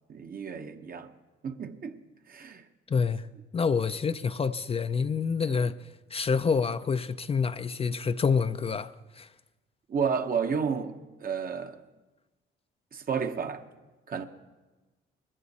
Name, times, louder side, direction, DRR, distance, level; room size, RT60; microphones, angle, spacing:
voice 1, 0.1-1.1 1.4-2.0 2.3-2.7 5.5-5.7 9.9-11.8 12.9-13.6 14.1-14.3, right 6 dB, 45° right, 1.0 m, -32 dB
voice 2, 2.9-3.2 3.5-5.7 6.1-9.3, left 5 dB, 30° left, 0.4 m, -27 dB
20.0 x 15.0 x 4.1 m
cardioid pair, 90°, 20 cm